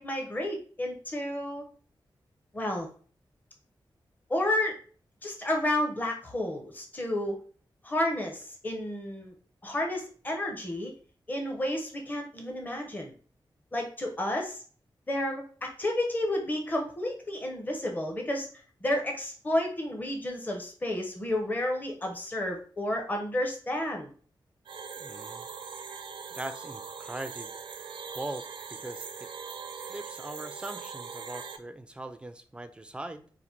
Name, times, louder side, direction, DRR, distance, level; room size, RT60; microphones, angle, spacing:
voice 1, 0.0-1.6 2.5-2.9 4.3-4.7 5.2-7.4 7.8-9.3 9.6-10.9 11.3-13.1 13.7-14.6 15.1-18.5 18.8-24.1, left 1 dB, 20° left, 1 dB, 0.7 m, -31 dB
sound 1, 24.7-31.6, right 6 dB, 75° right, 0.5 m, -41 dB
voice 2, 25.0-25.5 26.3-27.5 28.1-29.3 29.8-33.3, right 1 dB, 10° right, 9 dB, 0.4 m, -41 dB
4.1 x 2.6 x 4.3 m, 0.42 s
wide cardioid pair, 175°, 9 cm